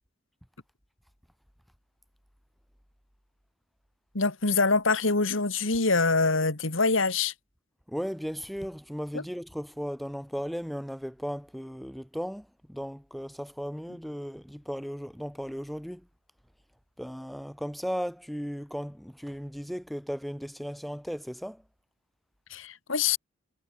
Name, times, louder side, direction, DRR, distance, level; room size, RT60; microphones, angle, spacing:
voice 1, 4.1-7.3 9.1-9.2 22.5-23.2, left 3 dB, 75° left, 2.4 m, -25 dB
voice 2, 7.9-16.0 17.0-21.6, equal, ahead, 4.6 m, -36 dB
head